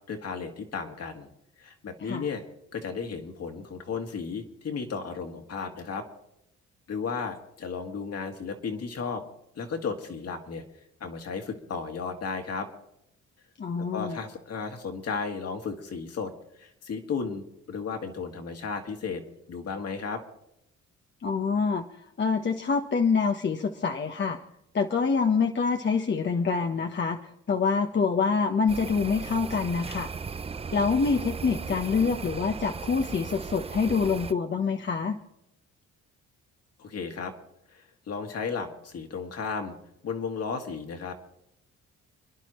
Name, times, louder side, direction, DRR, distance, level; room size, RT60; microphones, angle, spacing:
voice 1, 0.1-1.3 1.6-2.4 2.7-6.1 6.9-9.2 9.6-10.6 11.0-12.7 13.9-19.2 19.5-20.2 36.8-37.3 37.7-39.8 40.0-41.1, left 5 dB, 55° left, 4 dB, 2.2 m, -34 dB
voice 2, 13.6-14.2 21.2-21.8 22.2-24.4 24.7-30.1 30.7-35.2, left 5 dB, 35° left, 3 dB, 1.1 m, -26 dB
sound 1, 28.7-34.3, right 5 dB, 20° right, 0.5 m, -37 dB
29.5 x 10.5 x 3.1 m, 0.82 s
cardioid pair, 90°, 30 cm